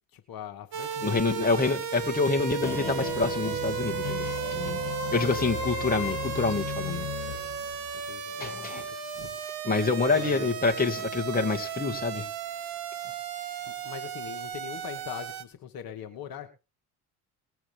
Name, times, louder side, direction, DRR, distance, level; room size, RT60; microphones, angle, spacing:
voice 1, 0.1-1.3 1.7-1.8 8.1-8.8 9.1-9.3 10.2-10.5 13.7-16.5, left 9 dB, 50° left, 1.9 m, -41 dB
sound 1, 0.7-15.4, right 9 dB, 55° right, 1.6 m, -35 dB
voice 2, 1.0-4.8 5.1-7.1 8.4-8.8 9.6-12.3, left 4 dB, 20° left, 2.5 m, -27 dB
sound 2, 2.6-8.2, left 14 dB, 70° left, 2.5 m, -36 dB
20.5 x 8.0 x 3.6 m
hypercardioid pair, 60°, 44 cm